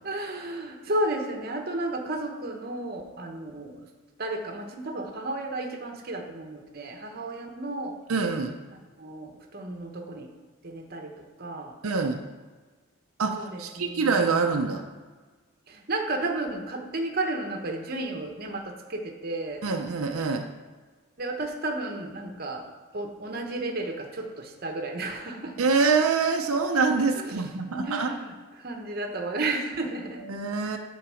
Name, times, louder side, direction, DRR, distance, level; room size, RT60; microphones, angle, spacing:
voice 1, 0.0-3.9 4.2-8.0 9.0-10.3 10.6-11.8 13.4-14.3 15.7-19.6 21.2-22.7 22.9-25.6 27.2-30.2, right 2 dB, 45° right, 3 dB, 1.0 m, -33 dB
voice 2, 8.1-8.5 11.8-12.2 13.2-14.8 19.6-20.5 25.6-28.1 30.2-30.8, right 4 dB, 90° right, 3 dB, 0.7 m, -25 dB
8.8 x 4.0 x 6.3 m, 1.3 s
head